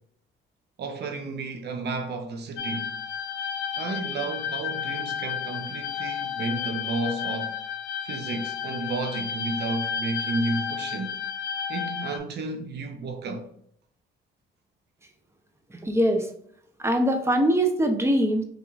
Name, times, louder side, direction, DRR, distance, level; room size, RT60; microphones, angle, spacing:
voice 1, 0.8-2.9 3.8-7.6 8.0-11.2 11.7-13.5, right 3 dB, 55° right, 0.7 m, -32 dB
sound 1, 2.6-12.2, left 7 dB, 75° left, 0.5 m, -32 dB
voice 2, 15.7-16.3 16.8-18.4, equal, 15° right, 0.7 m, -22 dB
4.0 x 2.9 x 2.4 m
cardioid pair, 90°, 20 cm